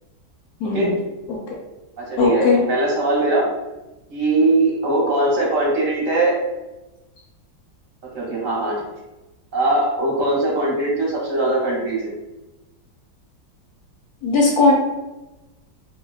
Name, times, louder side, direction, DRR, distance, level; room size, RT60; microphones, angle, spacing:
voice 1, 0.6-0.9 1.3-1.6 2.2-2.6 14.2-14.7, left 3 dB, 70° left, -2 dB, 0.9 m, -18 dB
voice 2, 2.0-3.5 4.1-6.4 8.1-8.8 9.5-12.1, right 2 dB, 55° right, -4 dB, 1.0 m, -20 dB
3.4 x 2.1 x 2.3 m, 1.0 s
omnidirectional pair, 1.9 m